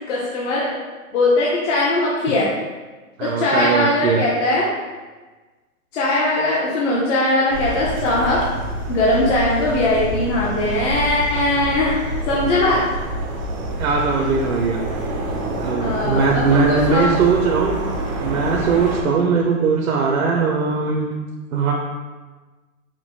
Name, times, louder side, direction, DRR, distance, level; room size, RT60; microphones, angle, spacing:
voice 1, 0.1-0.7 1.1-2.5 3.2-4.7 5.9-8.4 8.9-12.0 12.3-12.8 15.8-17.1, left 2 dB, 55° left, -6 dB, 1.0 m, -20 dB
voice 2, 3.2-4.2 13.8-14.8 15.6-17.7 18.2-21.1 21.5-21.7, right 5 dB, 75° right, 0 dB, 0.6 m, -20 dB
sound 1, 7.5-19.0, right 1 dB, 25° right, 0.4 m, -27 dB
5.7 x 2.1 x 3.0 m, 1.3 s
hypercardioid pair, 140°, 42 cm